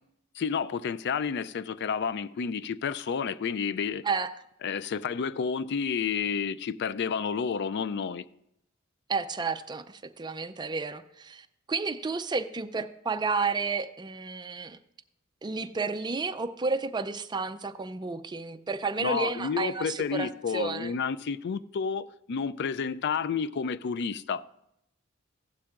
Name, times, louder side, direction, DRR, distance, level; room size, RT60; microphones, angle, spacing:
voice 1, 0.4-4.0 4.6-8.3 19.0-24.4, left 6 dB, 55° left, 0.4 m, -30 dB
voice 2, 9.1-14.8 15.4-20.9, right 4 dB, 20° right, 0.5 m, -31 dB
15.5 x 11.5 x 2.5 m
head